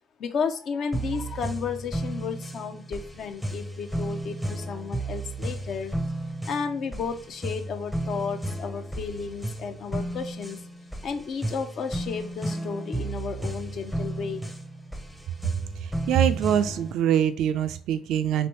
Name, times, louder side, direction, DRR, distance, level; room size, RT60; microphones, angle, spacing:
voice 1, 0.2-5.9 6.4-10.6 11.0-14.5, left 6 dB, 50° left, 0.5 m, -33 dB
sound 1, 0.9-16.9, right 1 dB, 10° left, 0.6 m, -33 dB
voice 2, 15.8-18.5, right 9 dB, 60° right, 0.3 m, -24 dB
3.1 x 2.7 x 2.9 m
figure-of-eight pair, 50°, 0 cm